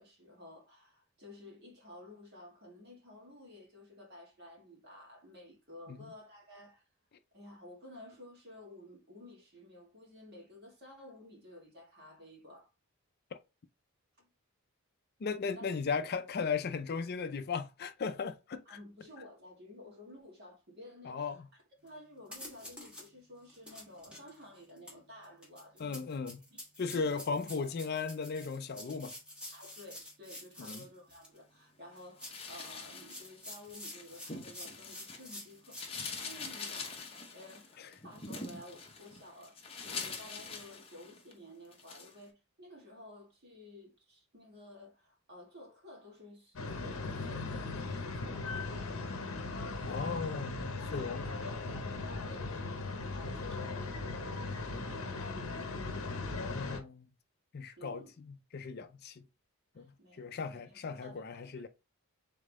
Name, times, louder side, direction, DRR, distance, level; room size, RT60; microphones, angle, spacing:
voice 1, 0.0-6.8 7.3-12.7 14.2-14.3 15.5-15.7 18.7-26.0 26.5-26.6 27.6-27.7 29.5-49.2 49.8-50.1 50.9-55.7 57.8-58.2 59.7-61.7, left 1 dB, 50° right, 2.1 m, -53 dB
voice 2, 15.2-18.8 21.0-21.5 25.8-26.4 26.8-29.1 30.6-30.8 37.8-37.9 49.9-51.2 56.4-57.1 57.5-59.3 59.8-59.9 60.2-61.7, left 5 dB, 45° left, 0.4 m, -37 dB
sound 1, 21.9-22.0 22.3-23.1 23.5-31.4 32.0-35.9, left 1 dB, 5° right, 1.3 m, -49 dB
sound 2, 32.2-35.3 35.6-41.3 41.7-42.1, left 4 dB, 25° left, 0.8 m, -44 dB
sound 3, 46.6-56.8, left 3 dB, 70° left, 0.8 m, -38 dB
3.7 x 3.6 x 3.5 m
head